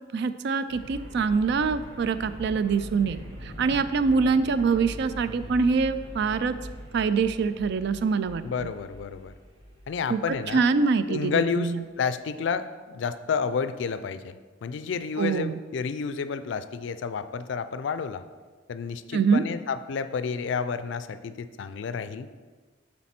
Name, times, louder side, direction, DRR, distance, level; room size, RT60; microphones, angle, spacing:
voice 1, 0.1-6.6 6.9-8.7 10.1-11.8 15.2-15.6 19.1-19.5, right 5 dB, 60° right, 12 dB, 0.3 m, -25 dB
sound 1, 0.7-10.6, equal, 90° right, 1.6 m, -42 dB
voice 2, 8.4-9.3 9.9-10.6 11.1-18.2 18.7-22.3, left 6 dB, 65° left, 12 dB, 0.4 m, -30 dB
7.3 x 4.3 x 4.3 m, 1.4 s
head